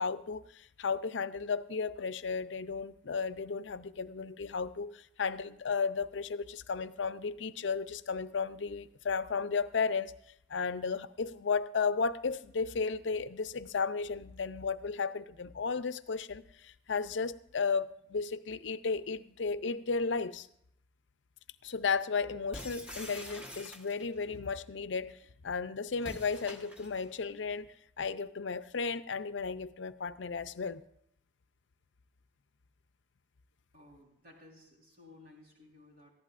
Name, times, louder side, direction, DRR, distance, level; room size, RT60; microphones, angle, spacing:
voice 1, 0.0-10.1 10.5-20.5 21.6-25.2 25.4-27.7 28.0-30.8, left 5 dB, 75° left, 14 dB, 0.5 m, -34 dB
sound 1, 22.5-24.2 26.0-27.1, left 1 dB, 5° right, 1.2 m, -46 dB
voice 2, 33.7-36.1, left 2 dB, 50° right, -1 dB, 4.0 m, -57 dB
19.5 x 14.5 x 2.5 m, 0.72 s
head